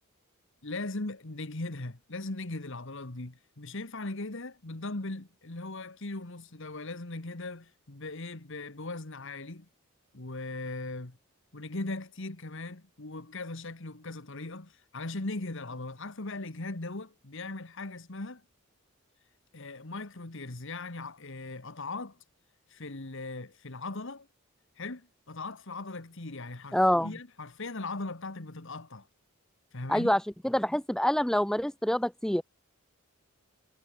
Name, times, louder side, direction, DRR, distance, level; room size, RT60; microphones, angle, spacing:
voice 1, 0.6-9.7 10.1-11.2 11.5-18.4 19.5-22.2 22.7-24.3 24.8-29.1 29.7-30.1, left 2 dB, 60° left, 1.7 m, -39 dB
voice 2, 26.7-27.1 29.9-32.4, left 1 dB, 5° left, 0.4 m, -26 dB
head